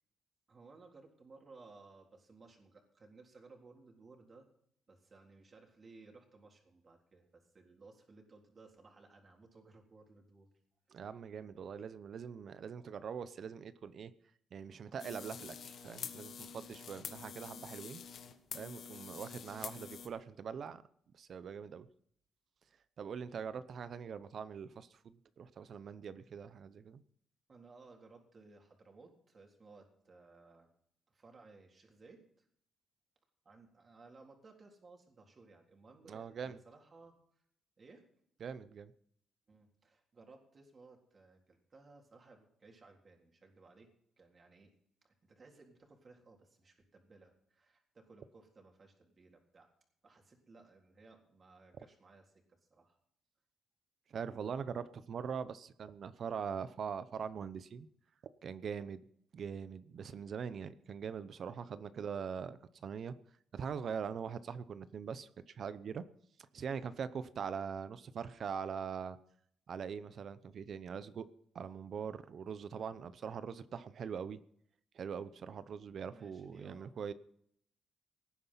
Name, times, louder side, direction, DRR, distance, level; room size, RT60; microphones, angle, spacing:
voice 1, 0.5-4.5 4.9-10.5 10.9-11.1 16.9-17.1 27.5-30.7 31.1-32.5 33.4-37.2 37.8-38.0 39.5-43.9 44.2-44.7 45.0-49.7 50.0-53.0 61.8-62.1 76.1-76.9, right 3 dB, 35° right, 2 dB, 3.7 m, -59 dB
voice 2, 10.9-14.1 14.5-18.0 18.5-20.8 21.2-21.9 23.0-27.0 36.1-36.6 38.4-38.9 54.1-57.9 58.4-59.0 59.3-63.1 63.5-66.0 66.5-69.2 69.7-71.3 71.5-74.4 74.9-77.1, right 7 dB, 55° right, 14 dB, 0.8 m, -42 dB
sound 1, 15.0-20.1, left 7 dB, 60° left, 1.4 m, -47 dB
18.0 x 9.7 x 5.8 m, 0.67 s
cardioid pair, 90°, 0 cm